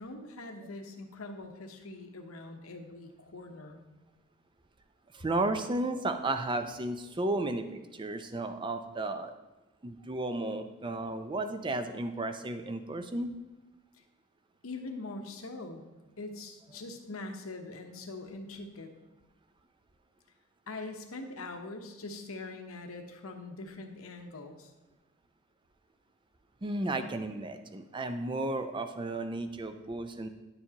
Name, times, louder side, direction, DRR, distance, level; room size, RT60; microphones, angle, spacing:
voice 1, 0.0-3.8 14.6-15.8 16.2-18.9 20.7-24.7, left 2 dB, 85° left, 5 dB, 0.9 m, -43 dB
voice 2, 5.1-9.3 9.8-13.3 26.6-30.3, right 2 dB, 25° right, 8 dB, 0.5 m, -33 dB
10.0 x 6.9 x 2.9 m, 1.1 s
head